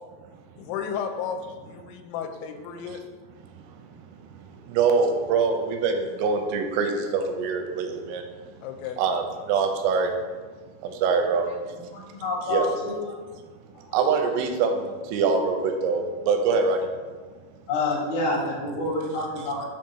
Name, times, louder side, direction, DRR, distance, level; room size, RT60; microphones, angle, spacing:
voice 1, 0.6-3.0 8.6-9.0, left 7 dB, 85° left, 5 dB, 3.1 m, -33 dB
voice 2, 4.2-8.2 9.0-10.1 10.8-11.7 12.5-12.7 13.9-16.8, right 5 dB, 90° right, 4 dB, 3.1 m, -24 dB
voice 3, 11.4-13.2 13.7-14.0 17.7-19.7, left 2 dB, 65° left, -6 dB, 1.9 m, -28 dB
7.5 x 2.6 x 5.3 m, 1.4 s
omnidirectional pair, 5.7 m